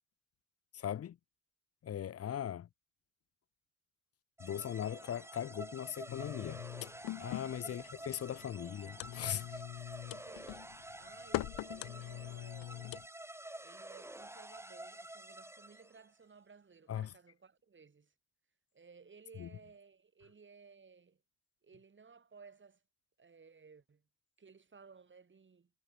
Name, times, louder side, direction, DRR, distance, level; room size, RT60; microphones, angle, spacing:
voice 1, 0.7-1.2 1.8-2.7 4.4-6.9 7.2-9.6 16.9-17.1 19.4-19.5, left 10 dB, 45° left, 0.7 m, -39 dB
sound 1, 4.4-16.1, right 1 dB, 5° right, 5.9 m, -49 dB
sound 2, 6.1-13.1, left 17 dB, 80° left, 0.7 m, -43 dB
voice 2, 10.2-10.6 10.9-13.1 13.6-18.1 18.7-21.2 21.6-22.8 23.2-24.0 24.4-25.7, right 5 dB, 35° right, 7.6 m, -58 dB
cardioid pair, 110°, 35 cm